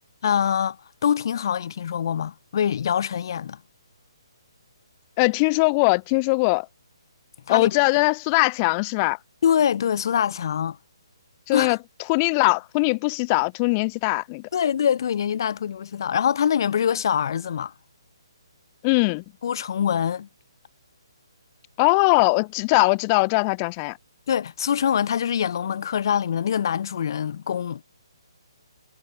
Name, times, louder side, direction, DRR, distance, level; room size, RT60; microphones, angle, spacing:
voice 1, 0.2-0.8 1.0-3.6 7.5-7.8 9.4-10.8 11.5-11.8 14.5-17.7 19.4-20.3 24.3-27.8, left 8 dB, 50° left, 1.4 m, -24 dB
voice 2, 5.2-6.7 7.5-9.2 11.5-11.8 12.1-14.5 18.8-19.2 21.8-24.0, left 30 dB, 25° left, 0.7 m, -21 dB
hypercardioid pair, 150°, 3 cm